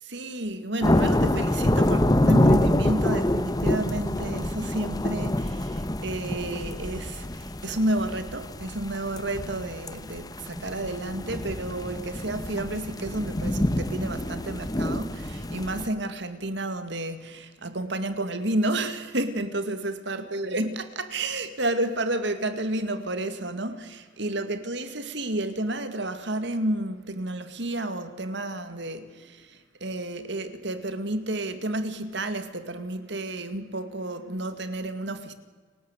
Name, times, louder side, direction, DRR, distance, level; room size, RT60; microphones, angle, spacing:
voice 1, 0.0-35.3, right 1 dB, 65° right, 2.3 m, -31 dB
sound 1, 0.8-15.9, left 1 dB, 20° left, 1.1 m, -26 dB
30.0 x 18.0 x 8.2 m
head